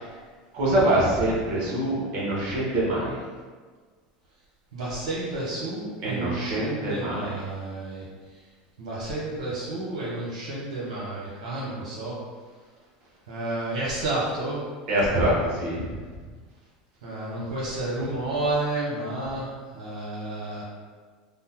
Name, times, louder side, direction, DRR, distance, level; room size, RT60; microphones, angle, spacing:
voice 1, 0.5-3.2 6.0-7.3 14.9-15.9, right 1 dB, 55° right, -5 dB, 1.0 m, -24 dB
voice 2, 4.7-8.0 8.8-12.2 13.3-14.6 17.0-19.5 19.7-20.6, right 2 dB, 85° right, -7 dB, 0.8 m, -31 dB
3.4 x 2.0 x 2.8 m, 1.5 s
supercardioid pair, 115°, 4 cm